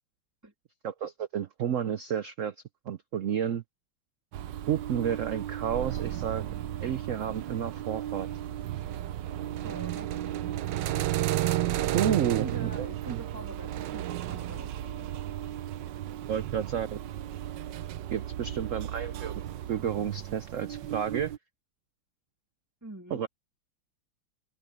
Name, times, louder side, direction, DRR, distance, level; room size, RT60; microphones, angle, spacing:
voice 1, 0.8-2.5 2.9-3.6 4.7-6.5 6.8-8.3 11.9-13.2 16.3-17.0 18.1-19.4 19.7-21.3 23.1-23.3, right 9 dB, 90° right, 0.7 m, -31 dB
sound 1, 4.3-21.4, right 13 dB, 70° right, 1.3 m, -34 dB
voice 2, 9.6-10.1 12.2-15.1 22.8-23.2, right 1 dB, 10° right, 2.9 m, -44 dB
omnidirectional pair, 2.2 m